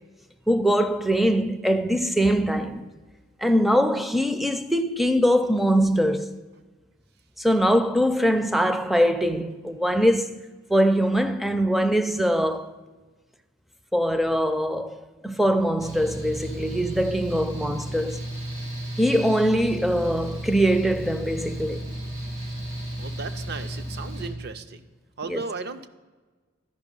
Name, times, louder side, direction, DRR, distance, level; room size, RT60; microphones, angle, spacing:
voice 1, 0.5-2.9 3.4-6.4 7.4-10.4 10.7-12.8 13.9-18.2 19.0-21.8 25.3-25.4, equal, ahead, 0.4 m, -22 dB
Mechanical fan, 15.8-24.3, right 1 dB, 85° right, 2.9 m, -34 dB
voice 2, 23.0-24.9 25.2-25.9, right 4 dB, 55° right, 0.6 m, -35 dB
12.5 x 5.7 x 5.3 m
head